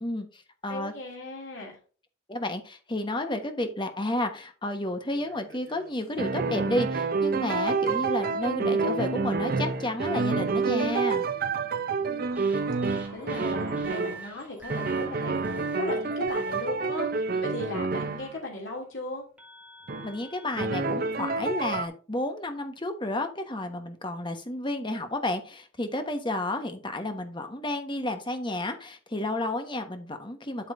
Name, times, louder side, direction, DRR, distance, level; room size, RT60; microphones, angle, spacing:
voice 1, 0.0-0.9 2.3-11.3 20.0-30.7, left 1 dB, 25° left, 6 dB, 1.2 m, -31 dB
voice 2, 0.7-1.8 12.0-12.2 12.6-12.7 13.1-19.2, left 2 dB, 80° left, -1 dB, 2.7 m, -37 dB
sound 1, 5.2-5.9 6.2-14.2 14.7-18.4 19.9-20.1 20.6-21.9, right 4 dB, 50° right, 0.7 m, -28 dB
sound 2, 12.3-16.6 17.8-17.9 19.4-20.6, right 3 dB, 10° right, 2.5 m, -45 dB
8.3 x 7.5 x 2.6 m, 0.38 s
head